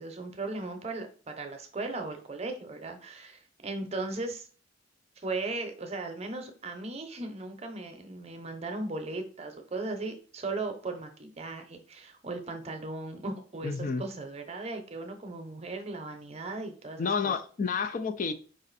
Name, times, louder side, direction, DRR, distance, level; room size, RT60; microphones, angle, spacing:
voice 1, 0.0-4.5 5.2-17.3, right 3 dB, 35° right, 5 dB, 0.7 m, -37 dB
voice 2, 13.6-14.0 17.0-18.3, left 5 dB, 45° left, 9 dB, 0.4 m, -30 dB
5.0 x 2.5 x 4.0 m, 0.40 s
head